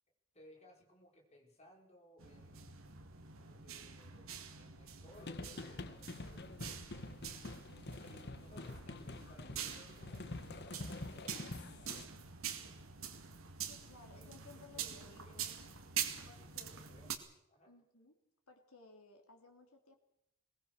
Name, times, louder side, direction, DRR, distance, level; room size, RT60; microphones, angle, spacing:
voice 1, 0.3-2.8 3.4-7.2 7.9-12.1 12.6-13.0 14.1-15.6 16.4-17.2 17.5-17.7, equal, 30° left, 1 dB, 4.9 m, -62 dB
sound 1, 2.2-17.2, right 8 dB, 70° right, 2.2 m, -46 dB
sound 2, 5.2-12.1, left 2 dB, 50° left, 1.1 m, -47 dB
voice 2, 13.7-15.6 16.2-16.8 17.7-18.2 18.5-20.0, left 3 dB, 75° left, 3 dB, 3.2 m, -59 dB
21.5 x 19.5 x 6.7 m, 0.79 s
head